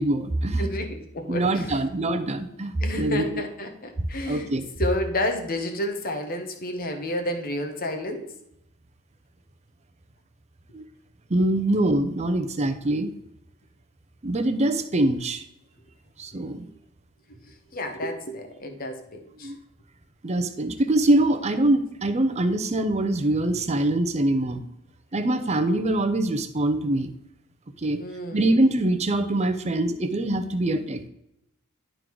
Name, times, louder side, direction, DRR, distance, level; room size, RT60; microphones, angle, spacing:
voice 1, 0.0-0.7 1.3-3.4 4.0-4.7 10.7-10.8 11.3-13.1 14.2-15.4 16.2-16.7 19.4-19.6 20.2-24.6 25.1-27.1 27.8-28.0 28.3-31.1, right 1 dB, 30° right, 9 dB, 0.6 m, -24 dB
voice 2, 0.6-1.8 2.8-4.5 4.8-8.3 17.7-19.5 28.0-28.5, left 1 dB, 40° left, 6 dB, 1.1 m, -30 dB
11.0 x 3.8 x 4.6 m, 0.81 s
head